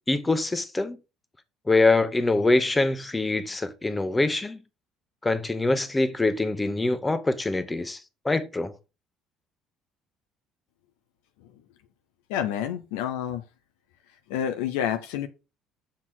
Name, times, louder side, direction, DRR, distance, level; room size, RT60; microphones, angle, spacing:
voice 1, 0.1-1.0 1.7-4.6 5.2-8.0 8.2-8.7, left 2 dB, 15° left, 1.2 m, -24 dB
voice 2, 12.3-13.4 14.3-15.3, left 10 dB, 70° left, 0.7 m, -28 dB
7.2 x 6.3 x 3.7 m
figure-of-eight pair, 55°, 0 cm